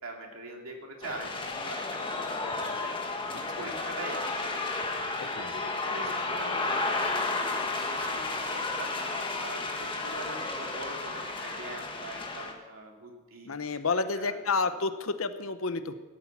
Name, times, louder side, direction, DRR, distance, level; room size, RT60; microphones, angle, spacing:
voice 1, 0.0-2.9 3.3-4.6 5.2-13.8 14.1-14.7, right 2 dB, 70° right, 1 dB, 2.6 m, -43 dB
sound 1, 1.0-12.5, left 3 dB, 25° left, 1.5 m, -32 dB
voice 2, 13.4-15.9, left 4 dB, 75° left, 10 dB, 0.9 m, -30 dB
16.0 x 8.6 x 7.4 m, 1.3 s
head